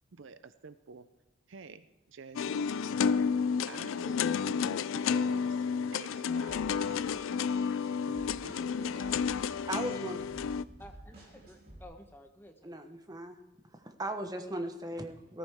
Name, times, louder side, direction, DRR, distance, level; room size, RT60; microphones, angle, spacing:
voice 1, 0.1-1.1 1.5-2.6 3.7-5.6 5.9-7.0 8.1-9.2, right 4 dB, 65° right, 13 dB, 0.5 m, -50 dB
sound 1, 2.4-10.6, left 6 dB, 70° left, 0.4 m, -31 dB
sound 2, 6.5-11.8, right 1 dB, 50° right, 3.2 m, -52 dB
voice 2, 9.7-10.2 12.6-13.4 13.7-15.4, right 1 dB, 20° right, 6 dB, 1.0 m, -38 dB
voice 3, 10.8-12.8, left 1 dB, 10° left, 4 dB, 1.1 m, -53 dB
19.0 x 13.5 x 3.6 m, 1.0 s
head